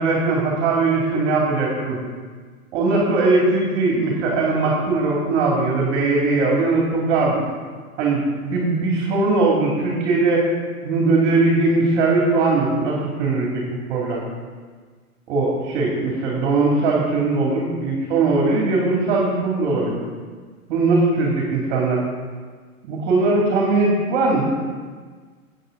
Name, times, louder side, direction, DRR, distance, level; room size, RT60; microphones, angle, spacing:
voice 1, 0.0-2.0 2.7-7.4 8.0-10.4 10.8-13.6 13.9-14.2 15.3-19.9 20.7-22.0 22.8-24.4, right 3 dB, 40° right, -2 dB, 2.6 m, -20 dB
15.0 x 8.3 x 3.9 m, 1.5 s
hypercardioid pair, 130°, 45 cm